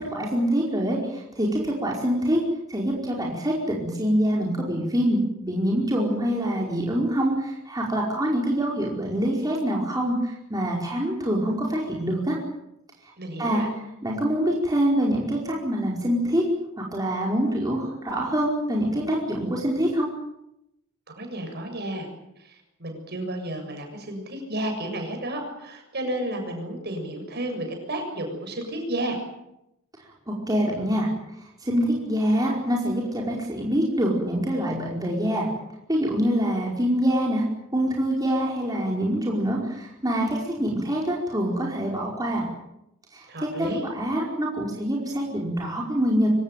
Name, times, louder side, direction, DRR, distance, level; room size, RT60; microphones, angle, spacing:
voice 1, 0.1-2.4 2.7-12.4 13.4-13.7 14.0-16.5 16.8-20.1 30.3-31.1 31.6-35.5 35.9-37.4 37.7-42.4 43.1-43.5 43.9-46.3, equal, 20° right, -2 dB, 4.9 m, -25 dB
voice 2, 13.2-13.7 21.1-22.1 22.4-29.2 43.3-43.8, right 1 dB, 50° right, 4 dB, 7.2 m, -32 dB
25.0 x 18.5 x 9.3 m, 0.85 s
head